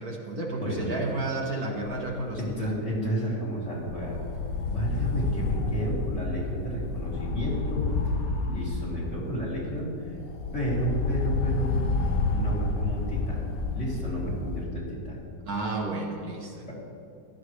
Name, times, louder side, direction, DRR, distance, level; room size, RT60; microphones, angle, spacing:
voice 1, 0.0-2.7 15.5-16.7, right 2 dB, 60° right, 0 dB, 1.8 m, -32 dB
voice 2, 0.6-0.9 2.4-4.2 4.7-8.1 8.4-10.2 10.5-11.8 12.3-15.2 16.7-16.8, equal, 40° left, -7 dB, 3.8 m, -32 dB
sound 1, 1.8-2.5 2.9-3.0 3.8-9.6 10.0-14.7, left 3 dB, 60° left, 1.2 m, -30 dB
15.5 x 12.0 x 3.3 m, 2.4 s
omnidirectional pair, 1.9 m